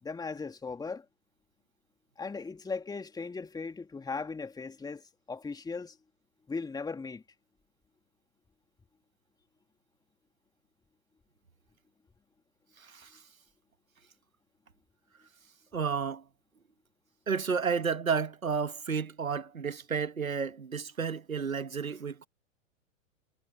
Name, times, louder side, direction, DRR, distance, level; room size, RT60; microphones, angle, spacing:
voice 1, 0.0-1.0 2.2-6.0 6.5-7.2, left 4 dB, 10° left, 2.6 m, -38 dB
voice 2, 12.8-13.1 15.7-16.2 17.3-22.3, right 6 dB, 90° right, 1.3 m, -31 dB
figure-of-eight pair, 105°, 40 cm